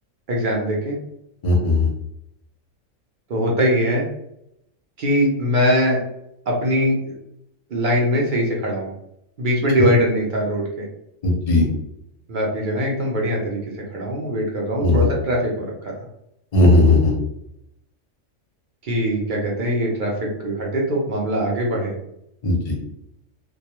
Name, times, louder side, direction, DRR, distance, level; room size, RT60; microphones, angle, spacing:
voice 1, 0.3-0.9 3.3-4.0 5.0-6.0 6.5-7.1 7.7-8.9 9.4-10.9 12.3-13.6 13.9-15.9 18.8-21.9, equal, 55° right, -2 dB, 0.5 m, -22 dB
voice 2, 1.4-1.9 9.8-9.9 11.2-11.7 14.8-15.1 16.5-17.1 22.4-22.8, left 2 dB, 40° left, -1 dB, 0.6 m, -16 dB
2.2 x 2.1 x 2.8 m, 0.79 s
omnidirectional pair, 1.4 m